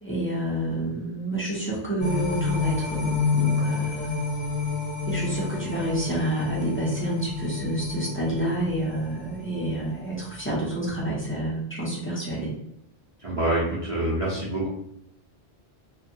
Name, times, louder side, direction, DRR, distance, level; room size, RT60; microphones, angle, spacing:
voice 1, 0.0-4.2 5.1-12.5, right 1 dB, 15° left, -6 dB, 0.5 m, -29 dB
sound 1, 2.0-10.4 10.8-10.9, left 4 dB, 40° left, 1.0 m, -29 dB
voice 2, 13.2-14.7, right 1 dB, 40° right, -8 dB, 0.6 m, -26 dB
2.6 x 2.3 x 2.7 m, 0.75 s
omnidirectional pair, 1.2 m